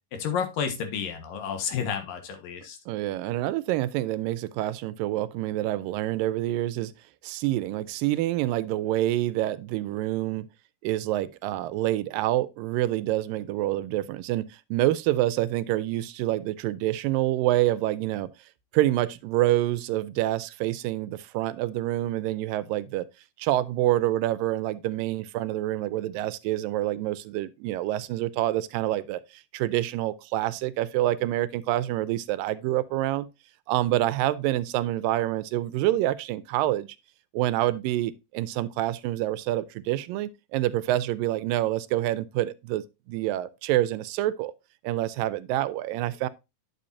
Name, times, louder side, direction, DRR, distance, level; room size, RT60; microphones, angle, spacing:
voice 1, 0.1-2.8, left 7 dB, 90° left, 3.1 m, -31 dB
voice 2, 2.9-6.9 7.2-10.5 10.8-18.3 18.7-23.1 23.4-29.2 29.5-33.3 33.7-36.9 37.3-44.5 44.8-46.3, right 15 dB, 90° right, 2.3 m, -27 dB
10.0 x 6.9 x 2.7 m
omnidirectional pair, 3.9 m